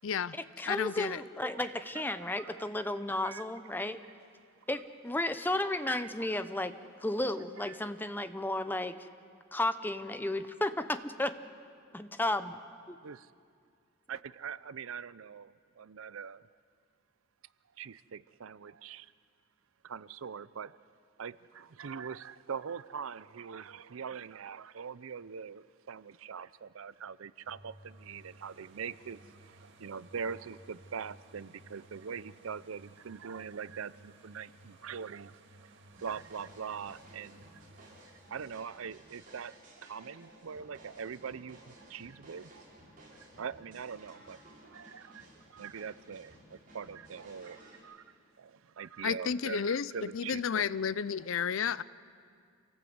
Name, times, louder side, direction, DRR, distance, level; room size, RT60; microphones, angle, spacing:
voice 1, 0.0-0.4 0.7-1.2 49.0-51.8, left 7 dB, 70° left, 18 dB, 0.5 m, -32 dB
voice 2, 0.6-4.0 4.7-9.1 9.5-11.3 11.9-12.6 12.9-13.0, left 1 dB, 10° left, 10 dB, 0.8 m, -33 dB
voice 3, 1.5-2.9 3.2-3.4 5.9-6.7 7.6-7.8 13.0-13.3 14.1-16.4 17.8-19.1 19.8-20.8 21.2-37.6 38.3-42.5 43.2-50.7 51.7-51.8, right 6 dB, 75° right, 18 dB, 0.5 m, -43 dB
sound 1, 27.4-41.1 41.7-41.8, right 1 dB, 60° right, 2.1 m, -58 dB
sound 2, 35.9-47.8, right 1 dB, 45° right, 7.1 m, -56 dB
27.0 x 17.5 x 7.9 m, 2.3 s
head